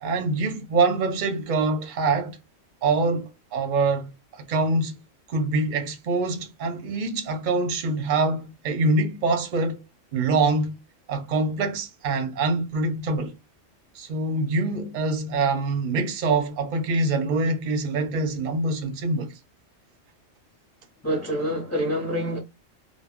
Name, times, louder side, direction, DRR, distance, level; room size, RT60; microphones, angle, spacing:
voice 1, 0.0-2.4 2.8-5.0 5.3-9.8 10.1-10.8 11.1-13.3 13.9-19.3, right 3 dB, 50° right, 0.6 m, -25 dB
voice 2, 21.0-22.4, equal, 15° left, 0.6 m, -26 dB
2.3 x 2.1 x 3.4 m
omnidirectional pair, 1.3 m